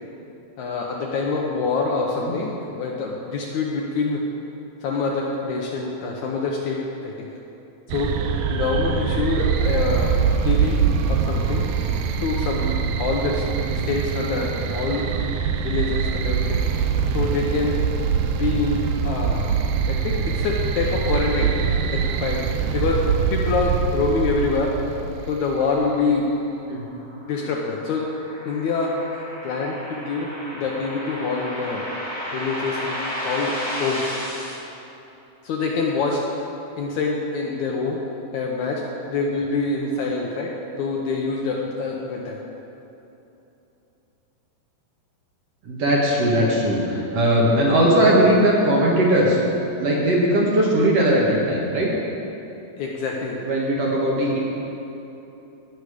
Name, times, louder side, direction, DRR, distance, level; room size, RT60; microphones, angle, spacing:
voice 1, 0.6-4.2 4.8-7.3 7.9-8.2 8.5-10.2 10.4-10.8 11.1-11.7 12.2-13.4 13.7-15.1 15.6-16.6 17.1-17.8 18.3-19.5 19.9-21.5 21.9-22.4 22.7-24.8 25.3-26.3 27.3-28.1 28.5-29.0 29.4-31.9 32.3-33.0 33.2-34.1 35.4-36.4 36.8-38.0 38.3-38.8 39.1-42.4 52.8-53.4, left 4 dB, 75° left, -1 dB, 1.9 m, -25 dB
sound 1, 7.9-25.9, right 6 dB, 85° right, 1.7 m, -23 dB
sound 2, 26.7-34.6, equal, 5° left, 1.6 m, -33 dB
voice 2, 45.6-49.4 49.8-51.9 53.4-54.4, right 1 dB, 55° right, -4 dB, 2.0 m, -19 dB
18.0 x 6.5 x 4.9 m, 3.0 s
omnidirectional pair, 4.1 m